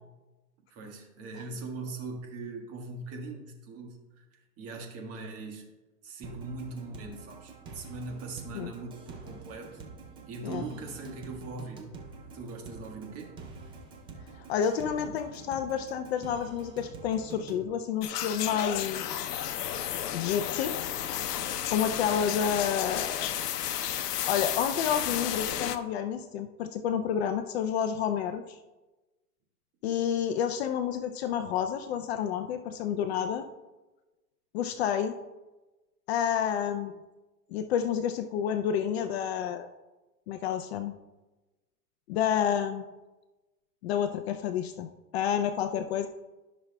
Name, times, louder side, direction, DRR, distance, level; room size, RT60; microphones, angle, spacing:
voice 1, 0.7-5.6 6.0-9.8 10.3-11.8 12.3-13.4, right 3 dB, 30° right, 2 dB, 1.5 m, -41 dB
sound 1, 6.2-17.6, right 4 dB, 10° right, 0.4 m, -47 dB
voice 2, 14.5-19.3 20.1-20.7 21.7-23.3 24.3-28.6 29.8-33.5 34.5-35.1 36.1-36.9 37.5-39.7 40.3-40.9 42.1-42.8 43.8-46.1, left 8 dB, 45° left, 8 dB, 0.5 m, -29 dB
sound 2, 18.0-25.8, left 10 dB, 80° left, 0.7 m, -32 dB
14.0 x 6.1 x 2.2 m, 1.1 s
hypercardioid pair, 135°, 47 cm